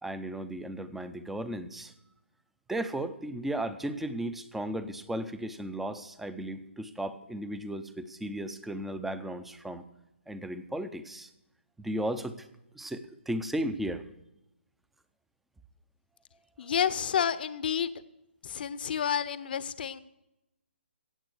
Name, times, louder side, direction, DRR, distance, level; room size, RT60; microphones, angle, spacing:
voice 1, 0.0-1.9 2.7-9.8 10.3-11.3 11.8-12.5 12.7-14.0, right 1 dB, 5° right, 13 dB, 0.6 m, -35 dB
voice 2, 16.6-17.9 18.4-20.0, left 8 dB, 50° left, 15 dB, 0.9 m, -30 dB
16.5 x 7.6 x 6.4 m, 0.89 s
hypercardioid pair, 150°, 6 cm